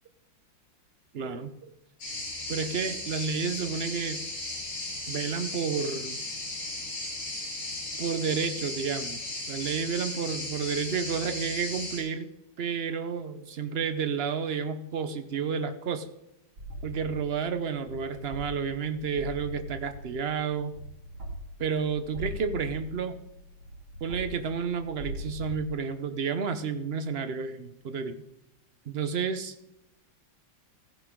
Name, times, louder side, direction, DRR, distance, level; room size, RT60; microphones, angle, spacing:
voice 1, 1.1-1.5 2.5-4.2 5.1-6.2 8.0-9.2 9.5-12.3 12.6-16.1 16.8-20.7 21.6-23.2 24.0-28.2 28.9-29.5, right 6 dB, 65° right, 10 dB, 0.6 m, -31 dB
sound 1, 2.0-12.0, left 2 dB, 85° left, 5.2 m, -36 dB
sound 2, 16.6-25.6, right 1 dB, 80° right, 3.1 m, -41 dB
15.5 x 10.5 x 3.7 m, 0.87 s
omnidirectional pair, 2.1 m